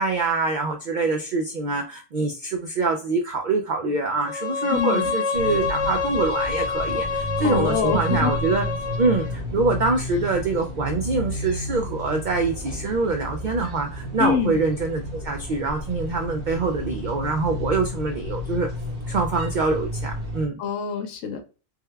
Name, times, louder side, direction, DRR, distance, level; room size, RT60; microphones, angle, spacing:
voice 1, 0.0-8.6 9.0-18.7 19.1-20.6, right 3 dB, 90° right, 3 dB, 0.4 m, -25 dB
Bowed string instrument, 4.2-9.3, left 4 dB, 25° left, 0.8 m, -27 dB
voice 2, 4.7-5.2 7.4-8.3 14.2-14.6 20.6-21.4, left 7 dB, 75° left, 7 dB, 1.0 m, -25 dB
sound 1, 5.3-20.5, left 1 dB, 55° right, 1.4 m, -32 dB
3.4 x 2.2 x 3.2 m, 0.34 s
omnidirectional pair, 1.4 m